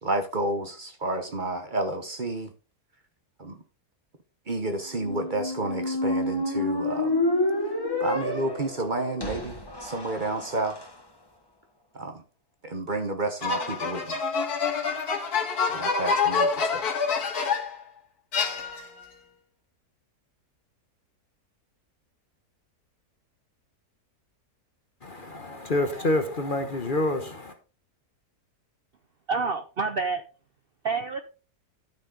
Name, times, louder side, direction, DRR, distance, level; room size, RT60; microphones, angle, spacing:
voice 1, 0.0-2.5 3.4-3.6 4.5-7.2 8.0-10.8 11.9-12.2 12.6-14.2 15.7-16.9, right 2 dB, 35° right, 1.1 m, -30 dB
Squeak, 4.9-10.9, left 1 dB, 15° left, 1.4 m, -29 dB
sound 1, 13.4-17.8 18.3-19.1, left 5 dB, 75° left, 2.1 m, -27 dB
voice 2, 25.0-27.5, left 1 dB, 40° left, 1.0 m, -27 dB
voice 3, 29.3-30.2 30.8-31.2, right 4 dB, 50° right, 0.7 m, -27 dB
12.0 x 6.4 x 3.9 m
omnidirectional pair, 1.6 m